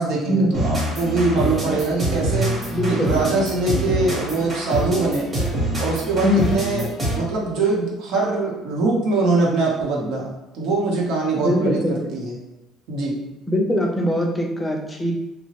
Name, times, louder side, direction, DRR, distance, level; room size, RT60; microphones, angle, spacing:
voice 1, 0.0-2.5 2.9-5.3 5.8-6.9 7.2-11.8 12.1-12.3 12.9-13.1, right 3 dB, 75° right, -3 dB, 0.8 m, -22 dB
sound 1, 0.5-7.4, right 1 dB, 25° right, 0.9 m, -25 dB
voice 2, 2.7-3.1 6.2-6.5 11.4-12.1 13.5-15.1, equal, 10° left, 1 dB, 0.4 m, -21 dB
2.9 x 2.1 x 2.8 m, 0.94 s
cardioid pair, 150°, 0 cm